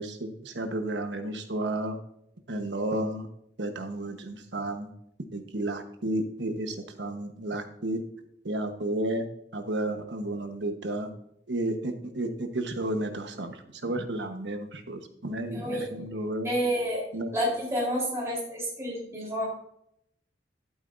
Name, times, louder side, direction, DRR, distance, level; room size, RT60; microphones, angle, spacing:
voice 1, 0.0-2.0 2.5-3.3 3.6-4.9 5.3-8.0 8.4-9.3 9.5-11.1 11.5-16.5 17.1-17.3, right 1 dB, 85° right, 6 dB, 1.2 m, -32 dB
voice 2, 15.5-15.9 16.4-17.0 17.3-19.5, equal, 15° right, -5 dB, 3.8 m, -29 dB
12.0 x 8.3 x 2.6 m, 0.74 s
head